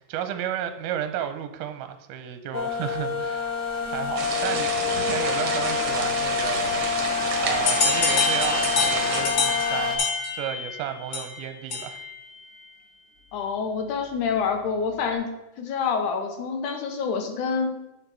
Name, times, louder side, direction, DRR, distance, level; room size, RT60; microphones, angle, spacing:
voice 1, 0.0-3.5 3.9-10.1 10.3-12.0, right 10 dB, 75° right, 9 dB, 2.1 m, -33 dB
sound 1, 2.5-10.0, left 6 dB, 35° left, 1.2 m, -27 dB
sound 2, 4.2-9.2, right 4 dB, 55° right, 1.8 m, -30 dB
sound 3, 7.7-12.2, left 4 dB, 55° left, 1.1 m, -26 dB
voice 2, 13.3-15.3 15.6-17.7, left 5 dB, 75° left, 5 dB, 2.2 m, -27 dB
8.8 x 6.5 x 4.7 m, 0.95 s
omnidirectional pair, 4.0 m